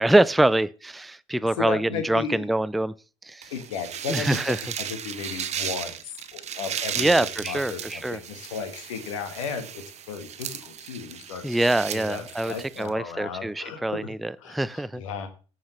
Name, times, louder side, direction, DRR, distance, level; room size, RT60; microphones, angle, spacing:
voice 1, 0.0-2.9 3.2-3.5 4.1-4.6 7.0-8.2 11.4-15.0, right 1 dB, ahead, 0.3 m, -24 dB
voice 2, 1.6-2.5 3.5-11.5 11.9-14.1 14.4-15.3, left 6 dB, 80° left, 1.5 m, -35 dB
sound 1, 3.4-12.9, right 9 dB, 40° right, 0.8 m, -35 dB
14.0 x 4.8 x 3.1 m
hypercardioid pair, 65°, 16 cm